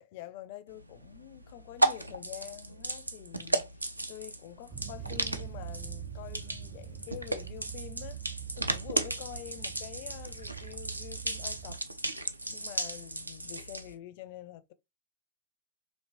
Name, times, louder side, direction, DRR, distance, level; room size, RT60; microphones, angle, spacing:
voice 1, 0.0-8.2 8.6-11.8 12.5-14.7, left 13 dB, 50° left, 0.4 m, -46 dB
sound 1, 0.7-13.9, right 2 dB, 85° right, 0.4 m, -35 dB
sound 2, 4.7-11.8, right 8 dB, 25° right, 0.6 m, -43 dB
4.3 x 2.9 x 2.5 m
figure-of-eight pair, 90°, 0 cm